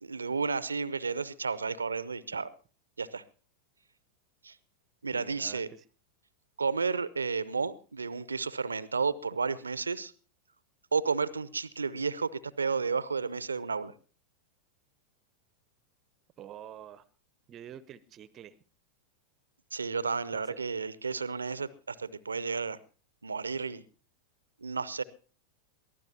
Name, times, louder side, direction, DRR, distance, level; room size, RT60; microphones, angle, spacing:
voice 1, 0.0-2.5 3.0-3.2 4.4-4.5 5.0-5.7 6.6-10.1 10.9-13.9 19.7-22.8 23.2-23.8 24.6-25.0, right 5 dB, 75° right, 19 dB, 0.6 m, -32 dB
voice 2, 5.1-5.8 16.4-17.1 17.5-18.6 20.3-20.6, right 10 dB, 30° right, 18 dB, 0.7 m, -47 dB
22.5 x 15.0 x 2.8 m, 0.37 s
figure-of-eight pair, 90°, 0 cm